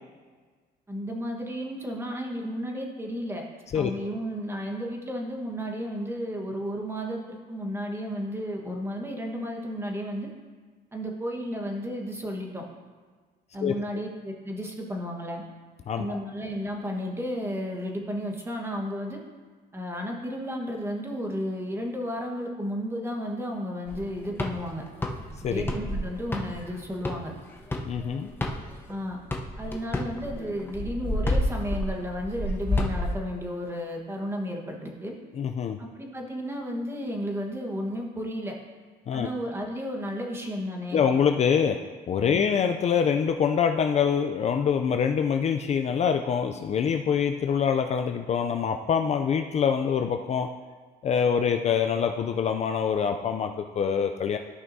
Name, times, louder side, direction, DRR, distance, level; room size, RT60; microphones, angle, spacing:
voice 1, 0.9-3.4 3.7-10.3 10.9-12.6 13.5-15.4 16.0-19.2 19.7-24.8 25.4-27.3 28.9-29.2 29.6-35.1 35.8-38.5 39.1-41.1 42.3-42.4, equal, 15° right, 0 dB, 1.3 m, -33 dB
voice 2, 15.9-16.2 25.4-25.6 27.9-28.3 35.4-35.8 39.1-39.3 40.9-41.8 42.1-50.5 51.0-54.4, left 7 dB, 40° left, 5 dB, 0.4 m, -25 dB
sound 1, 23.9-28.9 29.3-33.1, left 1 dB, 15° left, 0.8 m, -30 dB
13.5 x 5.8 x 2.7 m, 1.5 s
cardioid pair, 110°, 17 cm